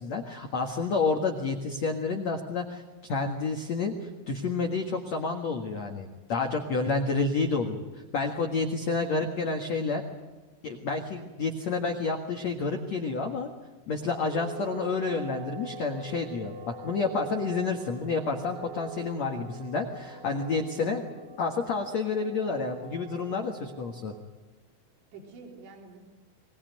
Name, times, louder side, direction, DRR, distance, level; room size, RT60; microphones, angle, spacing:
voice 1, 0.0-7.8 8.1-10.0 10.6-13.5 13.9-21.0 21.4-24.1, left 4 dB, 90° left, 3 dB, 1.5 m, -29 dB
voice 2, 8.8-9.3 20.8-21.3 25.1-26.0, right 3 dB, 55° right, 2 dB, 5.7 m, -49 dB
sound 1, 14.3-24.2, right 6 dB, 75° right, 3.9 m, -44 dB
24.0 x 19.5 x 9.2 m, 1.2 s
omnidirectional pair, 6.0 m